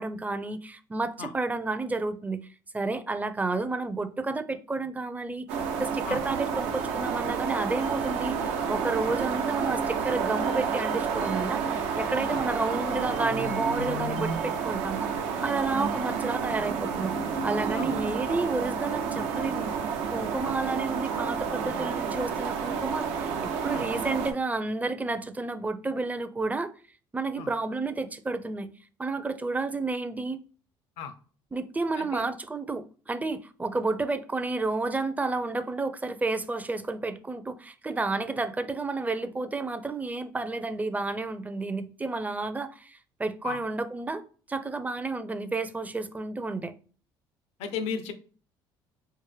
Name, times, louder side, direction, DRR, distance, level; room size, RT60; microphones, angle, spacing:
voice 1, 0.0-2.5 2.7-5.5 5.7-17.2 17.4-19.7 20.1-26.7 27.1-28.7 29.0-30.4 31.5-44.2 44.5-46.7, right 3 dB, 15° right, 0.5 m, -31 dB
sound 1, 5.5-24.3, right 6 dB, 80° right, 0.7 m, -30 dB
voice 2, 47.6-48.1, left 6 dB, 75° left, 0.6 m, -35 dB
4.5 x 2.0 x 3.2 m
supercardioid pair, 80°, 11 cm